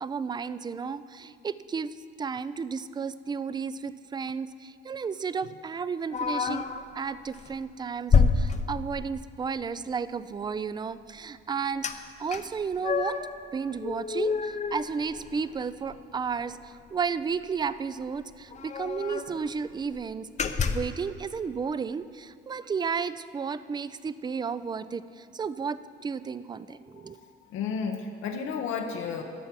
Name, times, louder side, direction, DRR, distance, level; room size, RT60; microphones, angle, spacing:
voice 1, 0.0-6.6 7.0-13.2 13.5-20.3 20.6-27.2, right 5 dB, 20° right, 15 dB, 0.3 m, -33 dB
sound 1, 6.1-6.8 7.3-7.5 8.1-9.2 11.8-12.0 12.3-13.3 13.8-15.6 15.9-16.0 16.3-16.5 17.6-17.7 18.0-18.1 18.5-19.4 19.8-20.0 20.4-21.0, left 5 dB, 35° left, 0.6 m, -27 dB
voice 2, 27.0-29.2, left 6 dB, 85° left, 3 dB, 0.8 m, -33 dB
11.0 x 5.7 x 7.4 m, 2.3 s
cardioid pair, 90°, 20 cm